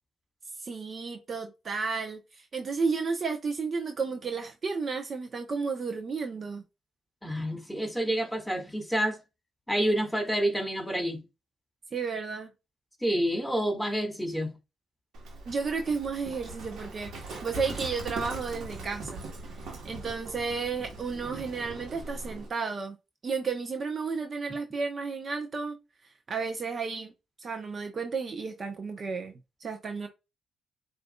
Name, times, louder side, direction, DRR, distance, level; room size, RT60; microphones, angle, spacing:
voice 1, 0.6-2.2 2.5-6.6 11.9-12.5 15.5-17.1 17.4-19.2 19.8-23.0 23.2-25.8 26.3-27.1 27.4-30.1, right 4 dB, 50° right, 0.8 m, -32 dB
voice 2, 7.2-9.2 9.7-11.2 13.0-14.6, right 1 dB, 5° left, 1.9 m, -28 dB
Livestock farm animals working animals, 15.1-22.5, right 2 dB, 70° right, 1.3 m, -41 dB
7.6 x 2.6 x 2.3 m
supercardioid pair, 50°, 0 cm